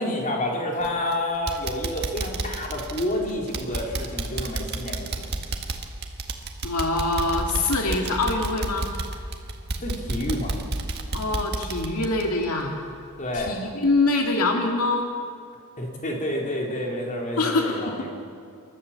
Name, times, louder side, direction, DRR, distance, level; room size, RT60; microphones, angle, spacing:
voice 1, 0.0-5.1 9.8-10.6 13.2-13.6 15.8-18.1, left 1 dB, 35° left, -1 dB, 3.8 m, -29 dB
sound 1, 0.8-1.1 1.5-13.0 13.4-13.5 14.0-14.1, right 2 dB, 50° right, 1.8 m, -31 dB
voice 2, 6.6-8.9 11.1-12.7 13.3-15.1 17.4-18.1, left 2 dB, 80° left, 2 dB, 2.1 m, -24 dB
28.0 x 13.0 x 7.4 m, 2.3 s
head